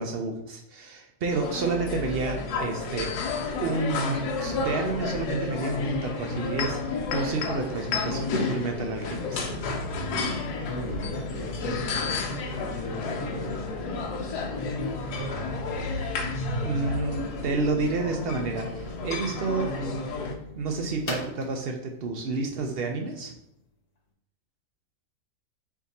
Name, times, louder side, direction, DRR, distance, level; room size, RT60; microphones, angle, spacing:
voice 1, 0.0-3.1 3.6-9.4 16.6-20.1 20.5-23.3, right 3 dB, 75° right, 3 dB, 0.5 m, -30 dB
sound 1, 1.3-20.3, left 3 dB, 85° left, 1.3 m, -31 dB
sound 2, 6.1-23.6, left 3 dB, 40° left, 0.6 m, -42 dB
voice 2, 10.6-15.0, left 1 dB, 55° left, -3 dB, 1.0 m, -39 dB
4.6 x 2.6 x 4.0 m, 0.75 s
omnidirectional pair, 1.6 m